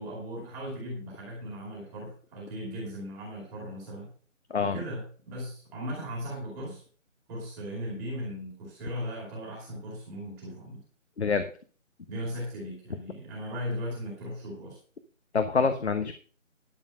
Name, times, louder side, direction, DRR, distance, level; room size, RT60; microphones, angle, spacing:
voice 1, 0.0-4.1 4.7-6.8 7.3-10.8 12.1-14.8, equal, 5° right, -3 dB, 2.4 m, -37 dB
voice 2, 15.3-16.1, left 5 dB, 55° left, 8 dB, 1.2 m, -26 dB
11.5 x 7.2 x 5.2 m, 0.41 s
figure-of-eight pair, 170°, 39 cm